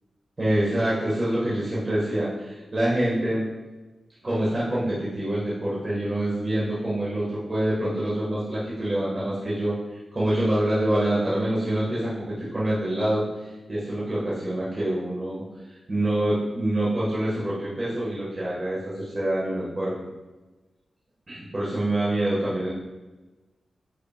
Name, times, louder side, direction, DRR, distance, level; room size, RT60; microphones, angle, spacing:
voice 1, 0.4-3.5 4.2-9.8 10.1-15.4 15.9-19.9 21.3-22.7, right 1 dB, 35° right, -8 dB, 1.9 m, -26 dB
8.9 x 4.9 x 2.5 m, 1.1 s
wide cardioid pair, 85°, 0 cm